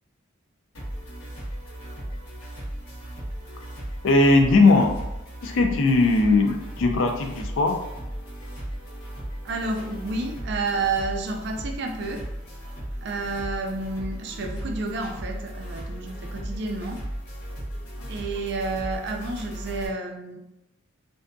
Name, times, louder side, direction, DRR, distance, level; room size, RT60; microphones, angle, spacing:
sound 1, 0.7-19.9, equal, 90° left, 0.9 m, -36 dB
voice 1, 4.0-4.9 5.4-7.8 18.0-18.1, left 3 dB, 65° left, 4 dB, 0.4 m, -19 dB
voice 2, 9.4-12.2 13.0-17.0 18.1-20.4, right 3 dB, 50° right, 3 dB, 0.3 m, -30 dB
2.6 x 2.5 x 2.2 m, 0.91 s
head